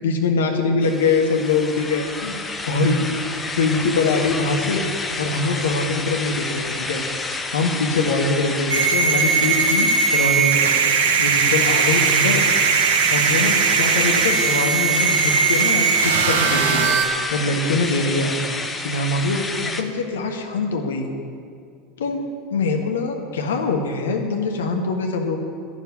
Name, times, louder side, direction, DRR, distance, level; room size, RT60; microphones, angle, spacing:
voice 1, 0.0-3.0 3.6-4.9 5.2-7.0 7.5-10.7 11.2-12.4 13.1-17.0 17.3-18.3 18.8-21.1 22.0-25.4, left 3 dB, 70° left, 3 dB, 1.5 m, -23 dB
sound 1, 0.8-19.8, left 3 dB, 15° left, 1.0 m, -29 dB
sound 2, 8.7-17.0, right 6 dB, 65° right, 1.7 m, -19 dB
10.5 x 7.4 x 9.5 m, 2.3 s
figure-of-eight pair, 80°, 0 cm